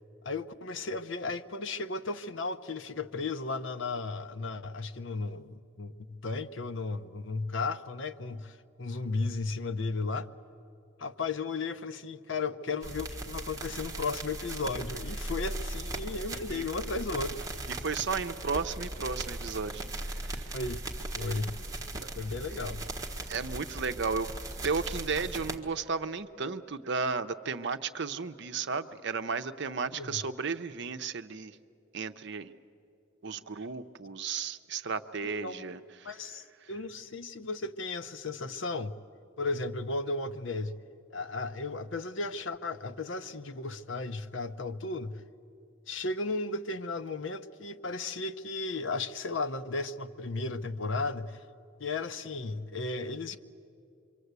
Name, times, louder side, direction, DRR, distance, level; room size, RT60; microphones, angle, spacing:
voice 1, 0.2-10.3 11.0-17.4 20.5-20.8 21.1-21.6 22.1-22.9 29.9-30.2 35.4-35.6 36.0-38.9 39.4-40.8 41.1-45.2 45.9-51.4 51.8-53.4, left 3 dB, 60° left, 0.8 m, -35 dB
sound 1, 12.8-25.6, right 2 dB, 15° right, 1.4 m, -38 dB
voice 2, 17.8-20.4 21.9-22.1 23.3-24.3 24.6-31.5 31.9-32.5 33.2-35.8, right 5 dB, 55° right, 0.7 m, -34 dB
26.5 x 24.0 x 8.1 m
head